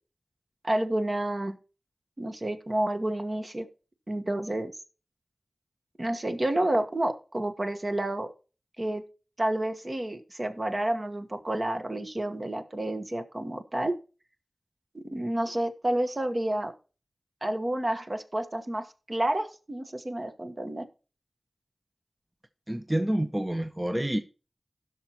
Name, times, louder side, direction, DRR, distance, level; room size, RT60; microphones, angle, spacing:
voice 1, 0.6-1.6 2.2-3.7 4.1-4.7 6.0-8.3 8.8-9.0 9.4-13.9 14.9-16.7 17.4-20.8, right 1 dB, 40° right, 7 dB, 1.3 m, -30 dB
voice 2, 22.7-24.2, right 1 dB, 15° right, 8 dB, 0.7 m, -28 dB
16.0 x 6.0 x 2.9 m, 0.35 s
wide cardioid pair, 50°, 0 cm